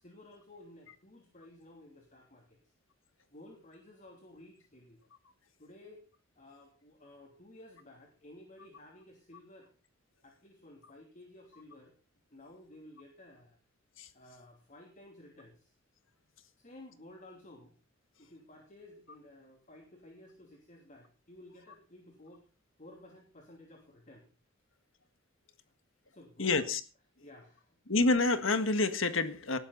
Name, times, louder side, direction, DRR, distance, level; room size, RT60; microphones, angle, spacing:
voice 1, 0.0-2.6 3.3-5.0 5.6-6.1 6.4-9.7 10.2-11.9 12.3-13.6 14.1-15.7 16.6-17.7 18.2-22.5 22.8-24.3 26.1-26.6 27.2-27.8, left 1 dB, 40° left, 3.0 m, -54 dB
voice 2, 26.4-26.8 27.9-29.6, left 3 dB, 70° left, 1.7 m, -28 dB
19.0 x 12.0 x 4.1 m
head